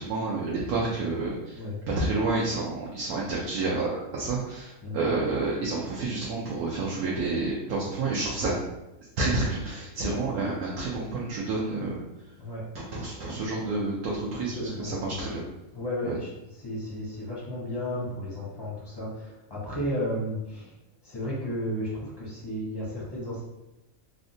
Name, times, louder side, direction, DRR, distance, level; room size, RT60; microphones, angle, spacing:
voice 1, 0.0-8.6 9.2-12.0 12.7-15.4 16.0-16.1, right 3 dB, 85° right, -5 dB, 1.1 m, -29 dB
voice 2, 12.4-12.7 14.4-15.3 15.7-16.3 16.6-20.7 21.0-23.4, equal, 25° left, -5 dB, 0.5 m, -33 dB
3.5 x 2.1 x 2.6 m, 0.97 s
omnidirectional pair, 1.5 m